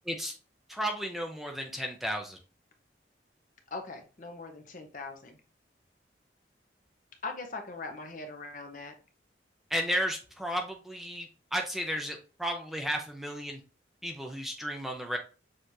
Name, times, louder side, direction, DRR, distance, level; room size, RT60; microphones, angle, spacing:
voice 1, 0.7-2.4 9.7-13.6 14.0-15.2, equal, ahead, 2 dB, 0.6 m, -33 dB
voice 2, 3.7-5.4 7.2-8.9, left 3 dB, 45° left, 4 dB, 0.9 m, -41 dB
6.4 x 3.1 x 2.7 m, 0.35 s
head